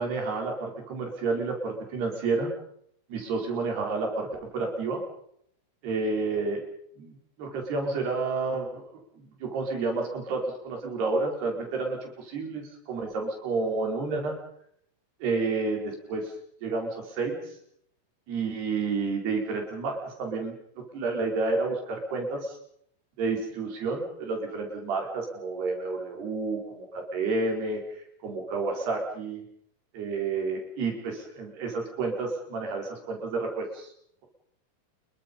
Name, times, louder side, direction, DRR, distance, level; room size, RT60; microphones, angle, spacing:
voice 1, 0.0-2.5 3.1-4.3 4.5-5.0 5.8-6.6 7.0-8.9 9.2-14.4 15.2-16.3 16.6-17.4 18.3-20.6 20.9-22.6 23.2-29.4 29.9-33.9, right 3 dB, 80° right, 2 dB, 6.9 m, -30 dB
28.5 x 22.5 x 5.6 m, 0.69 s
omnidirectional pair, 4.6 m